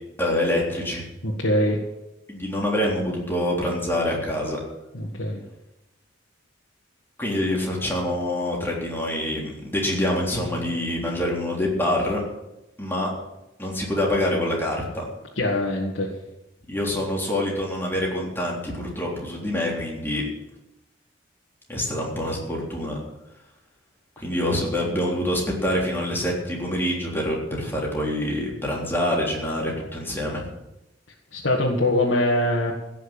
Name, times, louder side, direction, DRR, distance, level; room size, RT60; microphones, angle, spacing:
voice 1, 0.2-1.0 2.3-4.6 7.2-12.2 12.8-13.1 13.6-15.0 16.7-20.2 21.7-23.0 24.2-30.4, left 1 dB, 10° left, -2 dB, 3.5 m, -26 dB
voice 2, 1.2-1.8 4.9-5.4 15.4-16.1 31.3-32.7, left 1 dB, 90° left, -3 dB, 1.9 m, -23 dB
16.5 x 6.3 x 8.7 m, 0.95 s
head